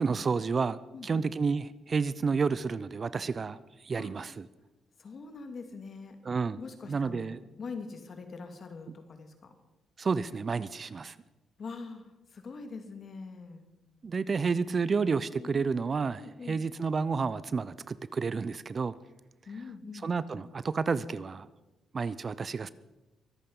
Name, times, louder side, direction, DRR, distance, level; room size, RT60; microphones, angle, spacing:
voice 1, 0.0-4.5 6.2-6.6 6.9-7.4 10.0-11.2 14.0-18.9 20.0-21.5 21.9-22.7, right 5 dB, 40° right, 17 dB, 0.6 m, -30 dB
voice 2, 0.9-1.3 4.0-4.1 5.0-6.2 6.6-9.5 11.6-13.7 15.3-15.8 16.2-16.6 19.5-20.1, left 4 dB, 45° left, 7 dB, 2.3 m, -43 dB
23.5 x 8.7 x 5.4 m, 1.0 s
cardioid pair, 90°, 0 cm